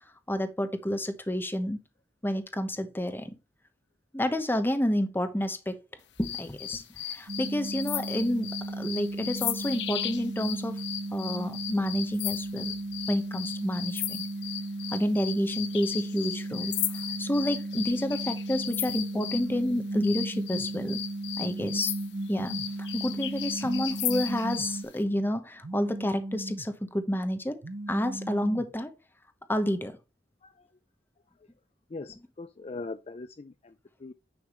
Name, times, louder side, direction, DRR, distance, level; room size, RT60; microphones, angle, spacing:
voice 1, 0.3-1.8 2.2-3.3 4.1-5.8 6.2-6.8 7.1-8.5 8.8-10.8 11.1-12.7 13.1-14.2 14.9-16.7 17.2-21.0 21.4-21.9 22.3-22.6 22.9-27.6 27.9-28.9 29.5-30.0, equal, 10° left, 1.0 m, -29 dB
sound 1, 6.2-19.5 20.0-24.8, left 11 dB, 85° left, 0.9 m, -36 dB
sound 2, 7.3-24.8, right 2 dB, 75° right, 1.6 m, -36 dB
Telephone, 19.9-20.7 21.6-22.7 23.6-24.7 25.6-26.7 27.6-28.7, right 1 dB, 55° right, 0.9 m, -38 dB
voice 2, 31.9-34.1, left 3 dB, 35° left, 0.4 m, -41 dB
9.6 x 5.8 x 3.0 m
head